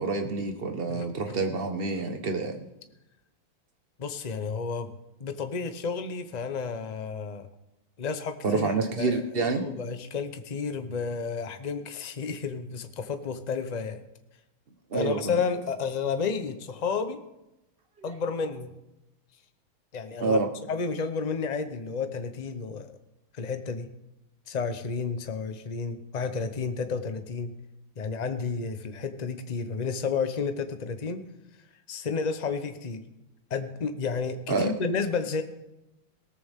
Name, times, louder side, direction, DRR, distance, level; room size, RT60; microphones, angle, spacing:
voice 1, 0.0-2.6 8.4-9.6 14.9-15.4 18.0-18.1 20.2-20.5 34.5-34.7, right 3 dB, 35° right, 5 dB, 1.2 m, -28 dB
voice 2, 0.9-1.4 4.0-4.9 5.2-7.5 8.0-14.0 14.9-17.2 18.0-18.7 19.9-20.4 20.7-22.9 23.3-23.9 24.5-27.5 28.0-31.3 31.9-33.0 33.5-35.4, left 5 dB, 55° left, 8 dB, 0.4 m, -31 dB
18.0 x 14.0 x 3.6 m, 0.95 s
omnidirectional pair, 2.2 m